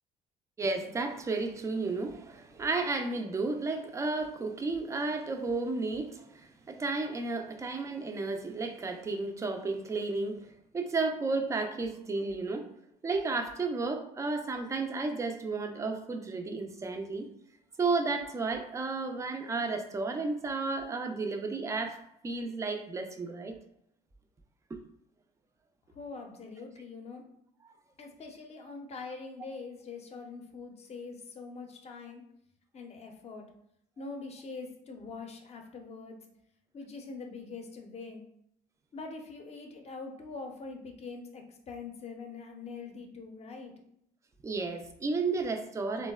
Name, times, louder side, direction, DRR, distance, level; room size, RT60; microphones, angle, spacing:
voice 1, 0.6-10.4 10.7-12.7 13.0-17.3 17.8-22.0 22.2-23.6 24.7-24.8 44.4-46.1, right 3 dB, 15° right, 5 dB, 0.3 m, -32 dB
voice 2, 25.9-27.2 28.0-32.2 32.7-33.4 34.0-36.2 36.7-38.2 38.9-43.7, left 4 dB, 35° left, 3 dB, 0.5 m, -43 dB
3.8 x 2.0 x 2.2 m, 0.76 s
cardioid pair, 120°, 18 cm